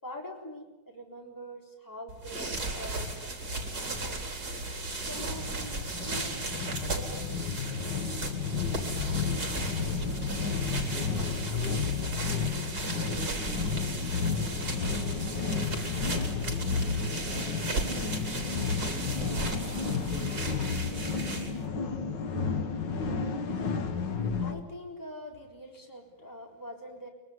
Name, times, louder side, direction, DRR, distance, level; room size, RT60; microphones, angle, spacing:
voice 1, 0.0-4.2 5.0-7.5 10.8-11.1 24.0-27.1, equal, 10° left, 1 dB, 3.7 m, -44 dB
sound 1, 2.1-21.7, right 2 dB, 50° right, 4.3 m, -36 dB
sound 2, 5.1-24.6, left 5 dB, 60° left, 2.2 m, -32 dB
voice 2, 10.5-12.0 12.9-14.2 14.5-15.0 15.3-15.9 16.7-18.5 18.8-19.5 19.9-20.6 20.9-21.6, right 1 dB, 25° right, -2 dB, 5.2 m, -47 dB
24.0 x 23.0 x 9.6 m, 1.1 s
omnidirectional pair, 2.2 m